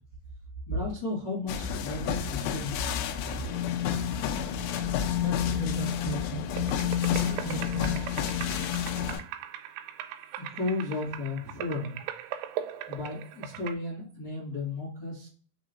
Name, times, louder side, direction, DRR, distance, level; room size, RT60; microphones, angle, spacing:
voice 1, 0.7-2.8 10.5-12.0 12.9-15.3, left 3 dB, 40° left, -7 dB, 1.4 m, -34 dB
sound 1, 1.5-9.2, left 7 dB, 85° left, 2.8 m, -33 dB
sound 2, 3.5-9.2, left 10 dB, 65° left, 2.6 m, -31 dB
voice 2, 5.2-6.5 7.1-8.1, right 5 dB, 75° right, -2 dB, 1.9 m, -38 dB
sound 3, 6.6-13.7, right 11 dB, 90° right, 2.8 m, -39 dB
6.4 x 3.0 x 2.5 m, 0.41 s
omnidirectional pair, 5.0 m